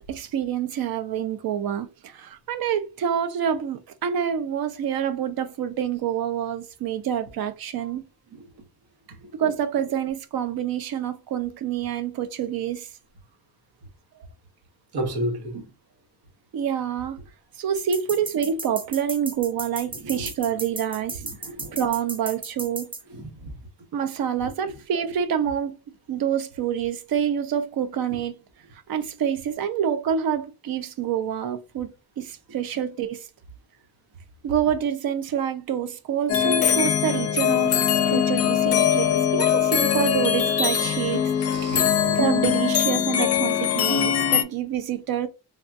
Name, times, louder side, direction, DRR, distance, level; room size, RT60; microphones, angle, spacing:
voice 1, 0.1-8.0 9.3-12.9 16.5-17.2 17.6-21.2 21.7-22.9 23.9-25.7 26.1-28.4 28.9-33.3 34.4-41.2 42.2-45.3, right 8 dB, 65° right, 0.6 m, -27 dB
voice 2, 14.9-15.6 21.4-21.8 23.1-23.5 41.5-42.2, right 1 dB, 90° right, 1.1 m, -31 dB
sound 1, 17.8-23.0, right 3 dB, 15° right, 0.4 m, -35 dB
sound 2, 36.3-44.4, left 9 dB, 40° left, 0.5 m, -22 dB
3.5 x 2.3 x 2.6 m
wide cardioid pair, 160°, 38 cm